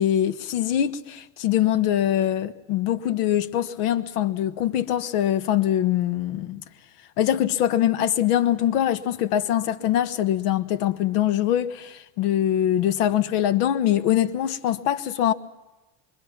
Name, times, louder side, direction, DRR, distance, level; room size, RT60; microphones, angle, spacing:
voice 1, 0.0-6.6 7.2-15.3, left 11 dB, 85° left, 1.4 m, -23 dB
25.0 x 24.0 x 5.9 m
supercardioid pair, 140°, 45 cm